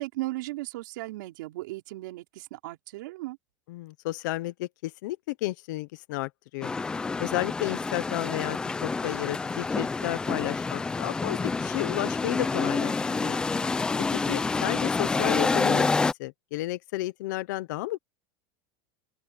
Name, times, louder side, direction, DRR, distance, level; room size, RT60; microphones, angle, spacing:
voice 1, 0.0-3.4, right 19 dB, 70° right, 5.4 m, -36 dB
voice 2, 3.7-6.7 7.2-13.4 14.3-15.9 16.2-18.0, left 18 dB, 65° left, 1.0 m, -32 dB
sound 1, 6.6-16.1, left 4 dB, 10° left, 0.6 m, -28 dB
open air
supercardioid pair, 180°, 11 cm